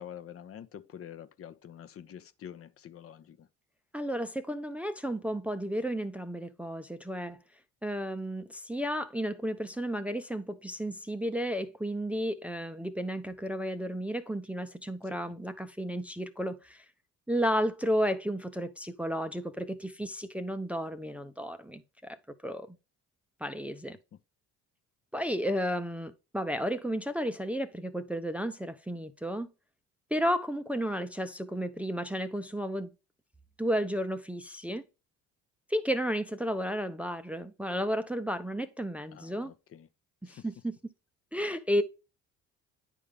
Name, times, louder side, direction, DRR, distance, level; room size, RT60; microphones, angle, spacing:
voice 1, 0.0-3.5 15.0-15.2 39.1-39.9 40.2-40.5, left 9 dB, 45° left, 0.7 m, -47 dB
voice 2, 3.9-7.4 7.8-16.8 17.3-22.2 22.4-22.8 23.4-24.0 25.1-29.5 30.1-32.9 33.6-34.8 35.7-39.5 40.2-40.7 41.3-41.8, equal, 5° right, 0.5 m, -32 dB
9.8 x 3.6 x 3.3 m
supercardioid pair, 80°, 32 cm